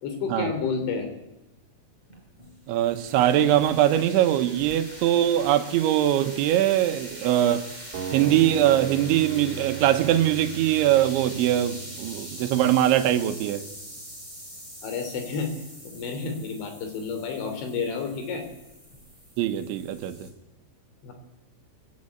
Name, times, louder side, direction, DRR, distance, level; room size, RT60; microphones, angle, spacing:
voice 1, 0.0-1.1 14.8-15.5 15.8-18.4 21.0-21.1, left 5 dB, 70° left, 5.5 m, -30 dB
sound 1, 2.1-20.3, equal, 10° left, 5.1 m, -43 dB
voice 2, 2.7-7.7 8.1-13.7 19.4-20.3, right 12 dB, 80° right, 3.3 m, -22 dB
sound 2, 7.9-13.9, right 9 dB, 60° right, 4.5 m, -37 dB
20.0 x 16.5 x 8.6 m
omnidirectional pair, 5.5 m